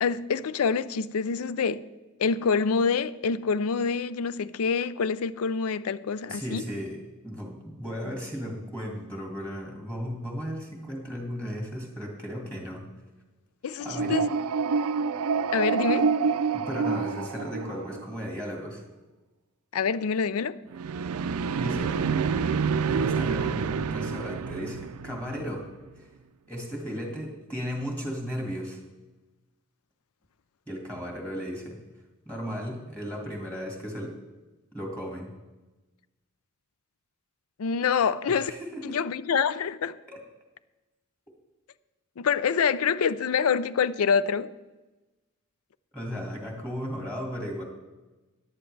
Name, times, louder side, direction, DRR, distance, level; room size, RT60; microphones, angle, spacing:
voice 1, 0.0-1.8 2.2-6.6 13.6-14.2 15.5-16.1 19.7-20.6 37.6-38.5 38.8-40.0 42.2-44.5, left 6 dB, 75° left, 0.4 m, -26 dB
voice 2, 6.3-12.9 13.8-14.3 16.5-18.8 21.6-22.0 22.8-25.7 26.0-26.1 26.5-28.8 30.7-31.8 32.3-34.2 34.7-35.3 38.3-39.0 40.1-40.2 45.9-47.6, equal, 5° left, 1.9 m, -35 dB
sound 1, 13.8-18.1 20.7-25.7, right 5 dB, 85° right, 0.4 m, -27 dB
14.0 x 11.0 x 3.3 m
head